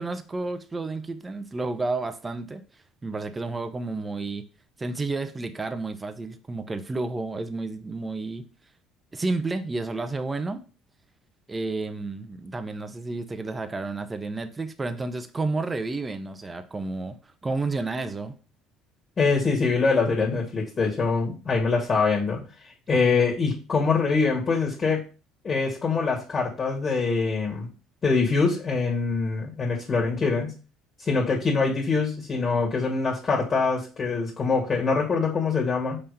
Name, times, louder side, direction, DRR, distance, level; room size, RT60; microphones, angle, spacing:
voice 1, 0.0-2.6 3.0-4.4 4.8-8.5 9.1-10.6 11.5-18.3 22.9-23.0, right 3 dB, 20° right, 0.8 m, -31 dB
voice 2, 19.2-22.4 22.9-25.1 25.4-27.7 28.0-30.5 31.0-36.0, left 4 dB, 35° left, 2.1 m, -24 dB
5.6 x 3.4 x 5.4 m
hypercardioid pair, 70°, 0 cm